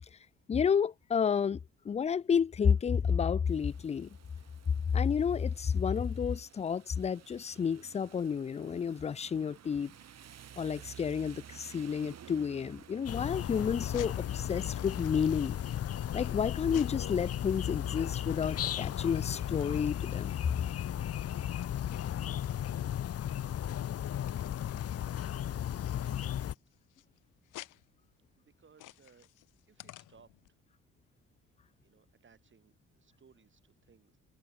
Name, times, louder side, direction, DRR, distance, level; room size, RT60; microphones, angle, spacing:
voice 1, 0.5-1.6 1.9-4.1 4.9-9.9 10.6-15.6 16.1-20.3, left 7 dB, 20° left, 0.4 m, -30 dB
Rain, 3.4-20.5, right 9 dB, 60° right, 3.6 m, -56 dB
sound 1, 13.1-26.5, left 10 dB, 55° left, 0.9 m, -35 dB
sound 2, 13.8-30.5, left 16 dB, 90° left, 2.8 m, -55 dB
voice 2, 25.1-25.7 26.1-26.3 28.6-29.3 29.7-30.3 31.8-34.2, right 6 dB, 40° right, 4.1 m, -64 dB
cardioid pair, 90°, 30 cm